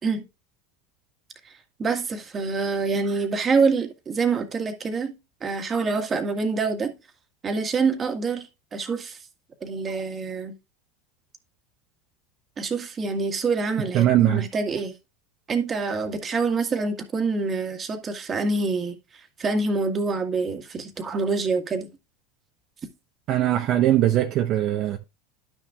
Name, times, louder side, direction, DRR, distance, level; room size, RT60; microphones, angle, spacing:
voice 1, 1.8-5.1 5.4-6.9 7.4-9.2 9.6-10.5 12.6-14.9 15.5-18.9 19.4-21.9, right 4 dB, 30° right, 1.8 m, -26 dB
voice 2, 13.9-14.4 23.3-25.0, right 13 dB, 50° right, 1.0 m, -20 dB
12.0 x 6.2 x 2.4 m
hypercardioid pair, 90°, 0 cm